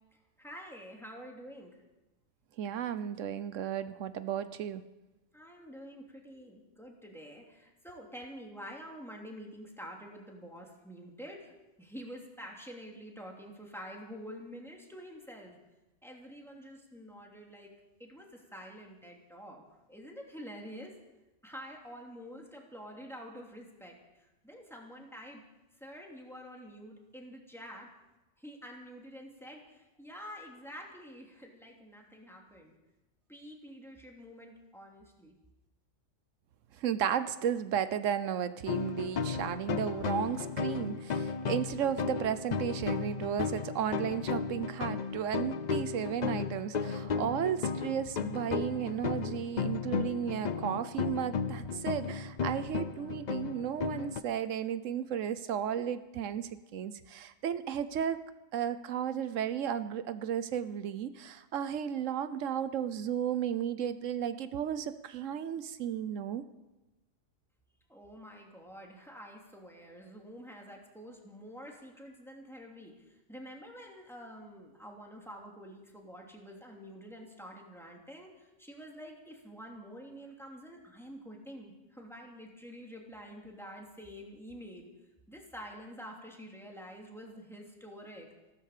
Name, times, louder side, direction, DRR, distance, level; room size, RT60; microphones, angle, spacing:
voice 1, 0.4-1.8 5.3-11.5 11.8-15.6 16.0-17.7 18.0-19.6 19.9-20.9 21.4-25.4 25.8-27.9 28.4-32.8 33.3-35.3 67.9-84.9 85.3-88.3, equal, ahead, -1 dB, 2.8 m, -48 dB
voice 2, 2.6-4.8 36.8-58.2 58.5-66.4, right 9 dB, 90° right, 13 dB, 1.1 m, -34 dB
sound 1, 38.7-54.2, left 5 dB, 45° left, 0.6 m, -34 dB
15.5 x 13.0 x 6.7 m, 1.0 s
omnidirectional pair, 1.3 m